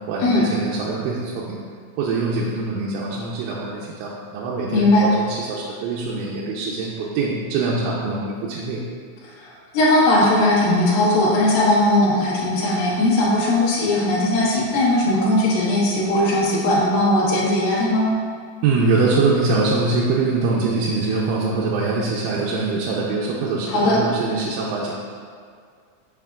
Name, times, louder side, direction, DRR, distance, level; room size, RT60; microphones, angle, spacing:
voice 1, 0.1-1.6 2.0-8.8 18.6-24.9, right 3 dB, 85° right, -5 dB, 2.9 m, -23 dB
voice 2, 4.7-5.0 9.7-18.1 23.7-24.0, left 1 dB, 65° left, -6 dB, 2.8 m, -18 dB
6.9 x 5.7 x 2.4 m, 2.1 s
omnidirectional pair, 5.0 m